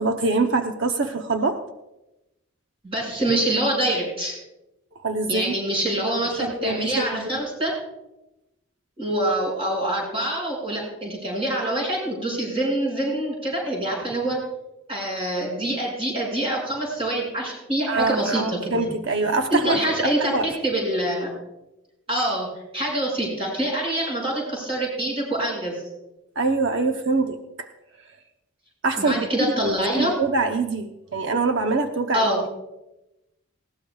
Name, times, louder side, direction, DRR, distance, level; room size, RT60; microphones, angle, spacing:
voice 1, 0.0-1.6 5.0-5.5 6.4-7.3 17.9-20.5 26.4-27.7 28.8-29.3 29.9-32.3, right 3 dB, 55° right, 5 dB, 0.8 m, -24 dB
voice 2, 2.8-4.4 5.3-7.7 9.0-14.4 14.9-18.9 19.6-21.3 22.1-22.5 22.7-25.8 29.0-30.1 32.1-32.4, right 1 dB, 25° right, -2 dB, 6.1 m, -25 dB
19.5 x 16.5 x 2.4 m, 0.94 s
head